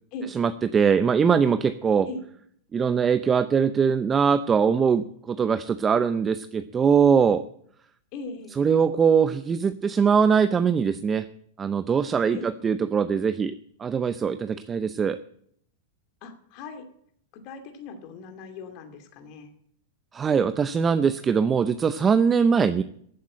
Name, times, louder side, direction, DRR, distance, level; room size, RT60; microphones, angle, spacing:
voice 1, 0.4-2.1 2.7-7.4 8.6-11.3 11.6-13.5 13.8-15.2 20.1-22.8, right 6 dB, 20° right, 12 dB, 0.6 m, -22 dB
voice 2, 8.1-8.6 12.3-12.5 16.2-16.9 17.4-19.5, left 3 dB, 45° left, 7 dB, 2.5 m, -39 dB
14.5 x 8.2 x 8.7 m, 0.67 s
hypercardioid pair, 140°, 0 cm